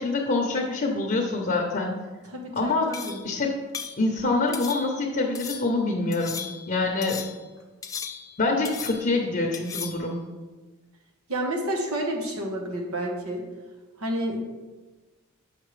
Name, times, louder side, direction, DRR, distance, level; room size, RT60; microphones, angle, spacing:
voice 1, 0.0-2.0 2.6-2.9 3.2-3.5 4.0-7.2 8.4-10.2, left 3 dB, 40° left, 0 dB, 0.7 m, -25 dB
voice 2, 2.3-3.2 11.3-13.4 14.0-14.4, right 1 dB, 90° right, 1 dB, 1.2 m, -30 dB
sound 1, 2.9-3.3 3.7-4.0 4.5-5.1 5.4-5.7 6.1-6.7 7.0-7.5 7.8-8.4 8.7-9.2 9.5-10.1, left 6 dB, 15° left, 0.3 m, -37 dB
7.5 x 5.3 x 3.2 m, 1.3 s
head